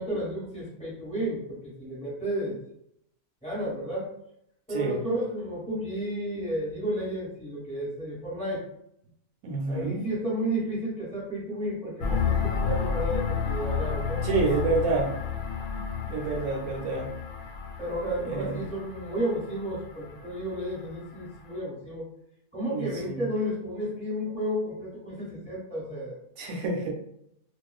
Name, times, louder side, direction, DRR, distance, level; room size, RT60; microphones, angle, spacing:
voice 1, 0.0-2.6 3.4-4.1 4.7-8.7 9.7-14.6 17.8-22.1 22.5-26.2, right 1 dB, 5° left, -7 dB, 1.2 m, -32 dB
voice 2, 4.7-5.0 9.4-10.0 14.2-15.1 15.7-17.1 18.2-18.6 22.7-23.3 26.4-27.0, right 3 dB, 75° right, 0 dB, 1.0 m, -28 dB
sound 1, 12.0-21.5, left 6 dB, 75° left, 1.0 m, -31 dB
2.4 x 2.4 x 2.3 m, 0.75 s
omnidirectional pair, 1.6 m